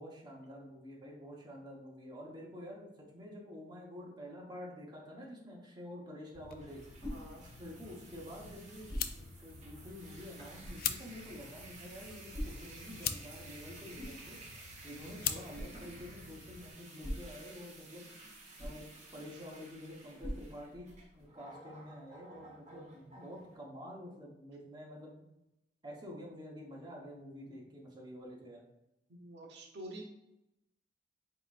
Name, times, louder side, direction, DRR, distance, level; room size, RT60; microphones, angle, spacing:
voice 1, 0.0-6.8 7.6-8.9 9.2-14.4 14.8-18.1 18.6-20.9 21.1-25.2 25.8-28.6, equal, 25° right, -3 dB, 0.9 m, -48 dB
sound 1, 6.3-16.7, left 8 dB, 55° left, 0.3 m, -44 dB
sound 2, 6.3-21.2, equal, 25° left, 1.2 m, -48 dB
sound 3, 6.6-23.6, right 2 dB, 45° right, 1.1 m, -54 dB
voice 2, 7.1-7.4 29.2-30.0, right 1 dB, 70° right, 0 dB, 0.8 m, -47 dB
4.3 x 3.8 x 2.4 m, 0.87 s
head